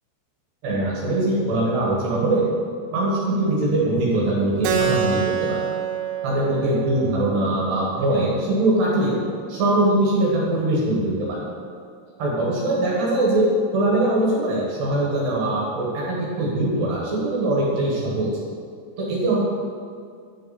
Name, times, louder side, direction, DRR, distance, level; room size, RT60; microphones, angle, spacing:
voice 1, 0.6-2.5 2.9-5.7 6.2-9.2 9.5-11.4 12.2-18.3 19.0-19.4, right 1 dB, 65° right, -4 dB, 3.2 m, -22 dB
Keyboard (musical), 4.6-9.7, right 7 dB, 80° right, 3.1 m, -28 dB
10.5 x 6.4 x 4.1 m, 2.2 s
omnidirectional pair, 5.8 m